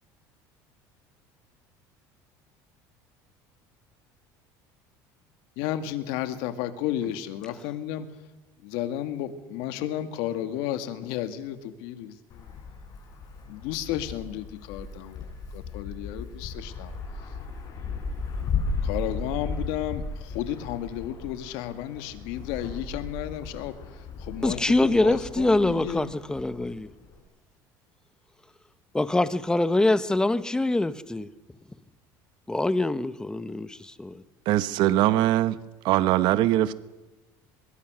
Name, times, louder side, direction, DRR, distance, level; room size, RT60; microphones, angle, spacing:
voice 1, 5.6-8.1 8.6-12.2 13.5-16.9 18.8-26.1, left 11 dB, 80° left, 2.1 m, -33 dB
Wind, 12.3-27.2, left 4 dB, 45° left, 7.1 m, -36 dB
voice 2, 24.4-26.9 28.9-31.3 32.5-34.2, left 2 dB, 10° left, 1.0 m, -24 dB
voice 3, 34.5-35.6 35.8-36.7, right 14 dB, 65° right, 1.1 m, -21 dB
24.5 x 21.5 x 6.4 m
cardioid pair, 125°, 9 cm